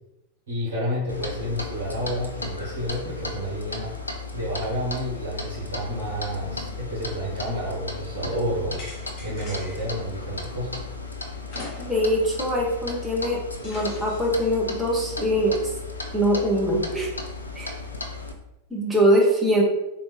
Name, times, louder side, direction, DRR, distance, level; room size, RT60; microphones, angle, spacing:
voice 1, 0.5-3.9 4.3-8.8 9.2-10.7, equal, 60° right, -8 dB, 1.4 m, -30 dB
Clock, 1.1-18.3, left 3 dB, 80° left, 0.4 m, -35 dB
sound 1, 8.8-10.0 11.5-12.2 12.6-12.7 13.6-14.5, left 2 dB, 35° left, 0.9 m, -41 dB
voice 2, 11.8-15.6 16.1-17.1 17.5-17.7 18.7-19.6, equal, 5° right, -3 dB, 1.0 m, -22 dB
3.5 x 2.7 x 3.2 m, 0.92 s
figure-of-eight pair, 90°, 0 cm